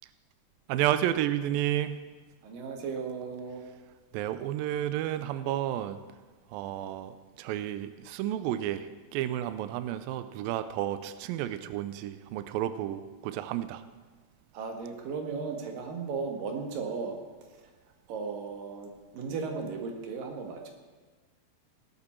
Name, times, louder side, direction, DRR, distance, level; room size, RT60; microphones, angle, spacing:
voice 1, 0.7-2.1 4.1-6.0 6.5-13.8, right 12 dB, 90° right, 12 dB, 2.0 m, -31 dB
voice 2, 2.4-3.6 14.5-17.2 18.1-20.7, right 5 dB, 60° right, 3 dB, 3.0 m, -36 dB
19.0 x 12.0 x 4.5 m, 1.4 s
omnidirectional pair, 4.8 m